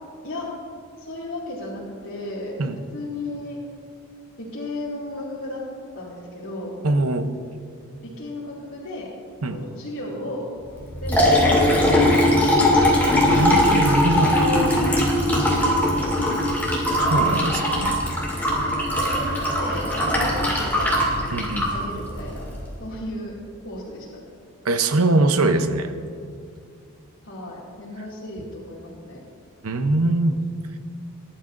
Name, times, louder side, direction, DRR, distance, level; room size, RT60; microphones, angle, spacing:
voice 1, 1.0-2.6 2.9-3.6 4.4-5.6 6.0-6.8 8.0-9.1 9.5-10.5 11.0-13.1 14.0-16.4 17.4-18.4 18.9-21.0 21.7-22.5 22.8-23.3 23.6-24.2 27.2-29.2, left 1 dB, 75° left, -8 dB, 2.4 m, -34 dB
voice 2, 6.8-7.3 9.4-9.6 13.3-14.3 17.0-18.0 21.3-21.7 24.6-25.9 29.6-30.4, right 2 dB, 90° right, 8 dB, 0.8 m, -22 dB
Liquid, 10.7-22.7, left 1 dB, 10° left, 2.2 m, -20 dB
20.5 x 11.0 x 2.6 m, 2.3 s
head